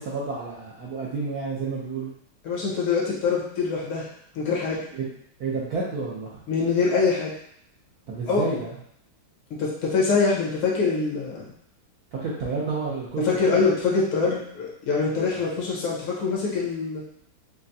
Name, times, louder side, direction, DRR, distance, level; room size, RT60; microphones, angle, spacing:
voice 1, 0.0-2.1 4.9-5.1 5.4-6.3 8.1-8.7 12.1-13.6, right 4 dB, 65° right, -6 dB, 1.0 m, -30 dB
voice 2, 2.4-4.1 4.4-4.8 6.5-7.3 8.3-8.6 9.5-11.4 13.2-17.0, left 4 dB, 80° left, -5 dB, 2.0 m, -24 dB
6.0 x 2.2 x 2.7 m, 0.69 s
omnidirectional pair, 2.3 m